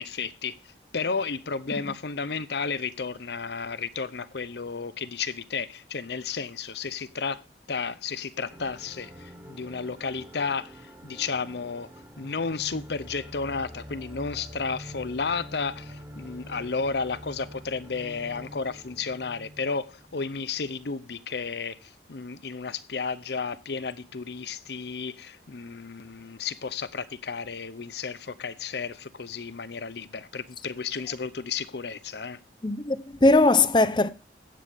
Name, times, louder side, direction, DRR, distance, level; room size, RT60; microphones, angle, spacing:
voice 1, 0.0-7.4 7.7-11.9 12.2-32.4, left 5 dB, 65° left, 0.7 m, -33 dB
sound 1, 8.5-20.4, equal, 15° right, 1.6 m, -46 dB
voice 2, 32.6-34.1, left 2 dB, 25° left, 0.7 m, -20 dB
15.0 x 8.3 x 3.5 m
head